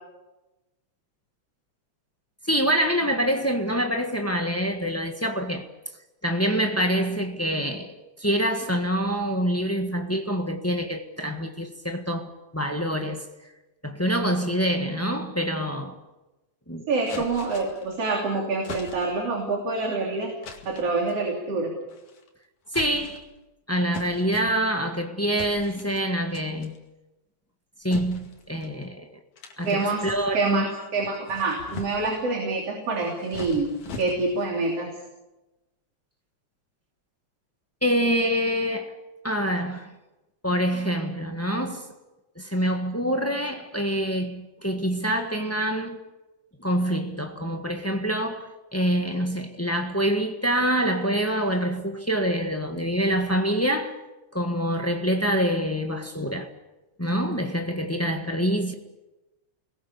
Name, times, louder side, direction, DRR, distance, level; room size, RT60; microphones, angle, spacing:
voice 1, 2.4-5.7 6.2-13.3 13.8-16.0 16.7-16.9 17.2-17.3 22.7-23.2 23.7-26.7 27.8-29.1 29.6-30.6 37.8-38.9 39.2-39.9 40.4-41.9 42.3-46.0 46.6-54.0 54.3-56.5 57.0-58.7, equal, 15° left, 0.5 m, -26 dB
voice 2, 16.9-20.3 20.7-21.7 29.6-34.9, right 3 dB, 55° right, 4.2 m, -26 dB
sound 1, 17.1-17.9 18.6-19.3 20.4-20.9 21.9-22.3 22.7-23.4 23.9-24.9 25.4-26.0 26.3-26.8 27.9-28.8 29.4-30.6 31.1-32.2 32.9-34.5, left 4 dB, 80° left, 3.8 m, -41 dB
30.0 x 21.5 x 7.1 m
omnidirectional pair, 3.3 m